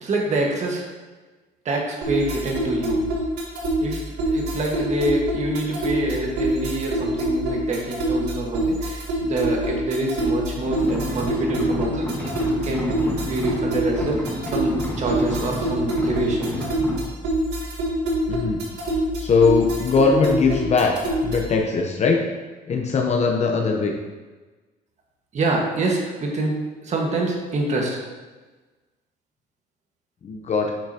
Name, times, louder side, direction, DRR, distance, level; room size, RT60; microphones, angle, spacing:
voice 1, 0.0-0.9 1.6-3.0 3.8-12.3 12.6-12.9 13.2-16.5 25.3-28.0, right 2 dB, 45° right, -1 dB, 1.6 m, -26 dB
sound 1, 2.0-21.6, right 1 dB, 80° right, 1.8 m, -26 dB
sound 2, 10.6-17.0, equal, 10° left, 1.6 m, -31 dB
voice 2, 18.3-18.6 19.2-21.0 21.2-22.2 22.7-23.9 30.2-30.7, left 4 dB, 40° left, 1 dB, 0.9 m, -20 dB
8.6 x 5.7 x 2.9 m, 1.3 s
cardioid pair, 110°, 17 cm